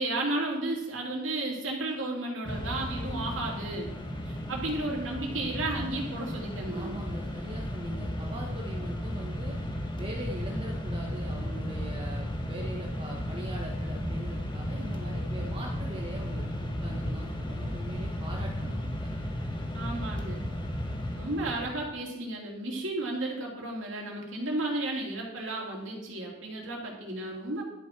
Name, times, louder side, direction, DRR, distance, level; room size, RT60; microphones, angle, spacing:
voice 1, 0.0-3.9 4.3-7.0 19.7-20.4 21.1-27.6, right 2 dB, 75° right, -1 dB, 3.0 m, -33 dB
Mechanisms, 2.4-21.9, equal, 25° left, 1.5 m, -34 dB
voice 2, 6.7-9.6 10.0-19.1, right 1 dB, 30° right, -1 dB, 1.3 m, -42 dB
12.0 x 6.8 x 6.0 m, 0.91 s
head